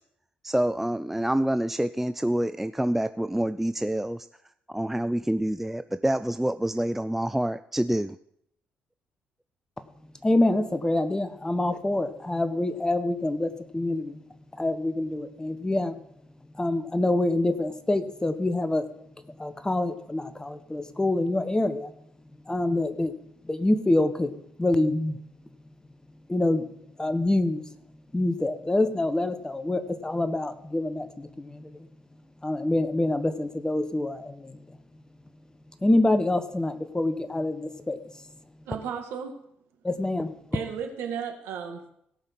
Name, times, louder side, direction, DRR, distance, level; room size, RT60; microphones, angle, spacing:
voice 1, 0.4-4.3 4.7-8.2, right 1 dB, 5° right, 0.4 m, -27 dB
voice 2, 10.2-14.2 14.5-16.0 16.5-18.9 19.2-21.9 22.5-23.1 23.4-25.2 26.3-26.7 27.0-27.6 28.1-31.9 32.4-34.8 35.8-38.3 39.8-40.3, left 2 dB, 15° left, 1.3 m, -26 dB
voice 3, 38.7-39.4 40.5-41.9, right 7 dB, 70° right, 1.7 m, -34 dB
17.0 x 5.7 x 6.0 m
hypercardioid pair, 50°, 4 cm